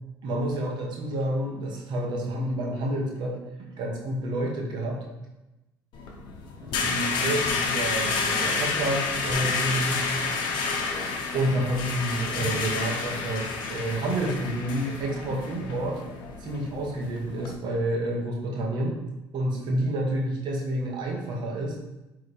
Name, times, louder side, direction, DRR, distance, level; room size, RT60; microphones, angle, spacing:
voice 1, 0.2-5.0 6.6-10.0 11.3-16.0 16.4-19.0 19.3-21.7, right 1 dB, 60° right, 0 dB, 1.3 m, -29 dB
sound 1, 5.9-17.5, left 4 dB, 65° left, 1.0 m, -30 dB
8.4 x 3.5 x 3.4 m, 1.0 s
supercardioid pair, 95°, 9 cm